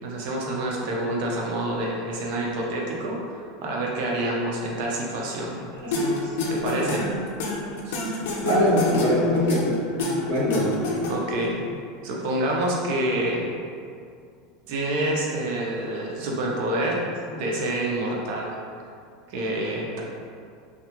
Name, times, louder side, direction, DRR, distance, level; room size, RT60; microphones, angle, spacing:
voice 1, 0.0-5.6 6.5-7.1 7.9-8.0 11.1-11.6 12.0-13.5 14.7-17.0 17.3-18.5 19.3-20.0, right 1 dB, 60° right, -2 dB, 0.5 m, -27 dB
sound 1, 5.9-11.5, left 2 dB, 75° left, 0.4 m, -27 dB
voice 2, 5.9-6.3 8.4-9.8 10.3-10.7, equal, 75° right, -7 dB, 0.9 m, -22 dB
2.3 x 2.1 x 2.8 m, 2.3 s
supercardioid pair, 145°, 0 cm